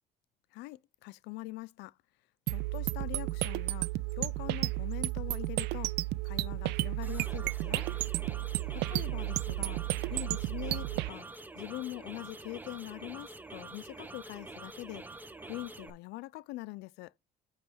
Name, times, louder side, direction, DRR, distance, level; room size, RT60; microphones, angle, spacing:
voice 1, 0.5-2.0 2.5-5.9 6.2-7.9 8.9-11.3 11.5-17.1, left 19 dB, 90° left, 0.4 m, -43 dB
sound 1, 2.5-11.1, right 18 dB, 85° right, 0.4 m, -33 dB
sound 2, 7.0-15.9, right 2 dB, 10° right, 0.8 m, -47 dB
8.0 x 3.3 x 5.4 m
cardioid pair, 110°, 17 cm